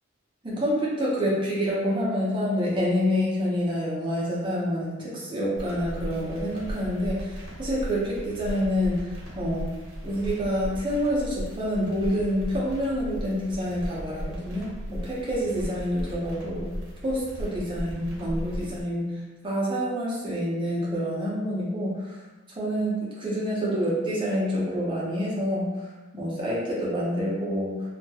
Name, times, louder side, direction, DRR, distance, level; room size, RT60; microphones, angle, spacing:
voice 1, 0.4-9.1 9.3-9.7 10.0-16.7 17.0-19.1 19.4-22.2 22.6-25.7 26.1-27.8, equal, 25° right, -6 dB, 0.5 m, -27 dB
sound 1, 5.6-18.8, equal, 60° right, 0.7 m, -37 dB
2.2 x 2.0 x 2.7 m, 1.2 s
head